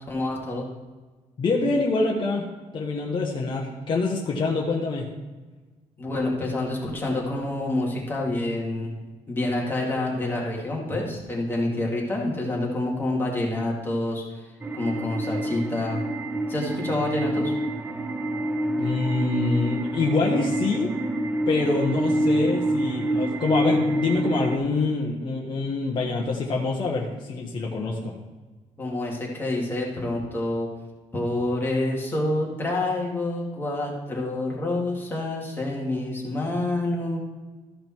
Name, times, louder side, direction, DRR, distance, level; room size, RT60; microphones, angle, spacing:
voice 1, 0.1-0.7 6.0-9.0 9.3-16.0 16.5-17.5 28.8-30.7 31.1-37.2, left 2 dB, 15° left, -3 dB, 2.2 m, -27 dB
voice 2, 1.4-2.5 2.7-5.1 18.8-20.9 21.5-28.1, left 3 dB, 40° left, -2 dB, 1.2 m, -25 dB
sound 1, 14.6-24.6, right 1 dB, 15° right, 0.5 m, -26 dB
14.0 x 5.2 x 4.5 m, 1.3 s
cardioid pair, 155°, 13 cm